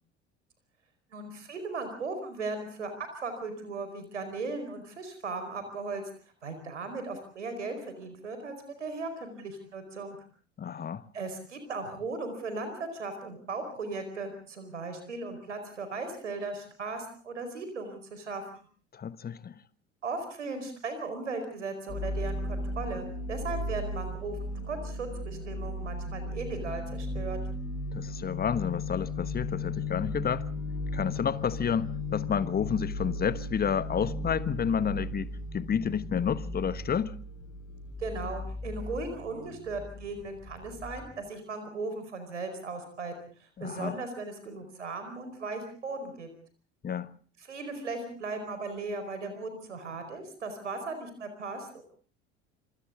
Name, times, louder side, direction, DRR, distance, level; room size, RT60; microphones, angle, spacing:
voice 1, 1.1-6.0 6.4-10.2 11.1-18.7 20.0-27.4 38.0-43.1 43.4-46.3 47.4-51.8, right 3 dB, 80° right, 4.9 m, -37 dB
voice 2, 10.6-11.1 18.9-19.5 27.9-30.5 30.9-37.2 43.6-44.0 46.8-47.1, left 7 dB, 25° left, 1.3 m, -30 dB
sound 1, 21.9-41.2, left 2 dB, 45° left, 6.9 m, -36 dB
27.5 x 26.0 x 3.8 m
figure-of-eight pair, 65°, 36 cm